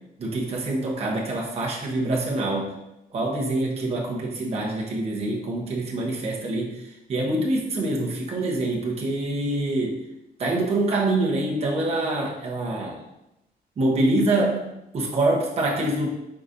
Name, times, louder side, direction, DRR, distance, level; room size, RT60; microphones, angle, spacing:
voice 1, 0.2-2.7 3.1-10.0 10.4-13.0 13.8-16.1, right 2 dB, 40° right, -3 dB, 0.9 m, -25 dB
4.7 x 3.9 x 2.6 m, 0.89 s
cardioid pair, 155°, 17 cm